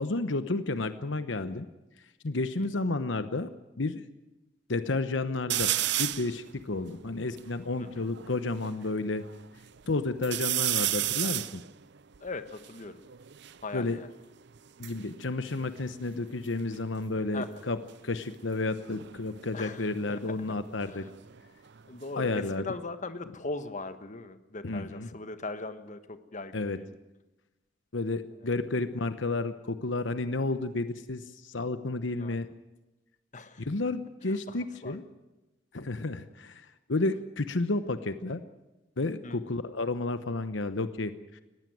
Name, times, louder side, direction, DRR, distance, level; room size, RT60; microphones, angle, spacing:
voice 1, 0.0-1.7 2.0-3.5 3.8-4.0 4.7-5.7 6.0-9.2 9.9-11.6 13.7-14.0 14.8-21.0 22.2-22.7 24.6-25.1 26.5-26.8 27.9-32.5 33.6-35.0 35.7-38.4 39.0-41.4, left 2 dB, 75° left, 11 dB, 1.0 m, -31 dB
sound 1, 5.5-6.3 6.9-7.0 7.2-8.7 9.2-9.8 10.2-13.6 14.5-16.4 16.7-17.2 18.8-21.4 21.8-22.5, right 14 dB, 65° right, 0.7 m, -33 dB
voice 2, 12.2-13.0 13.6-14.1 17.3-17.6 19.5-20.2 20.9-21.0 21.9-26.9 32.2-32.4 33.3-33.7 34.5-34.6 34.8-35.0 39.2-39.4, left 3 dB, 40° left, 10 dB, 1.4 m, -39 dB
20.0 x 15.5 x 9.3 m, 1.0 s
head